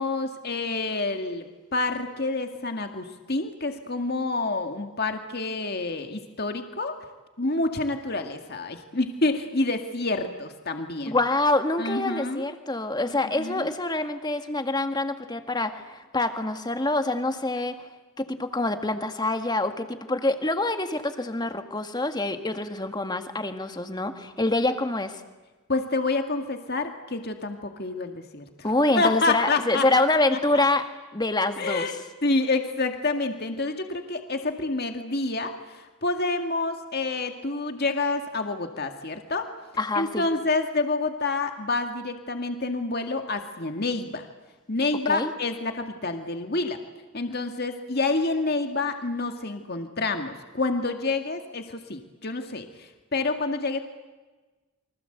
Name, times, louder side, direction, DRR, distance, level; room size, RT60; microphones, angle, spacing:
voice 1, 0.0-6.9 7.4-11.2 11.8-12.5 13.4-13.7 25.7-29.8 30.5-30.6 31.6-39.5 40.0-44.3 44.7-46.8 47.1-53.8, left 3 dB, 45° left, 6 dB, 2.0 m, -28 dB
voice 2, 11.1-17.9 18.2-25.2 28.6-30.8 31.1-31.9 39.8-40.3 45.1-45.3, left 2 dB, 20° left, 7 dB, 1.8 m, -26 dB
29.0 x 24.5 x 8.0 m, 1.3 s
head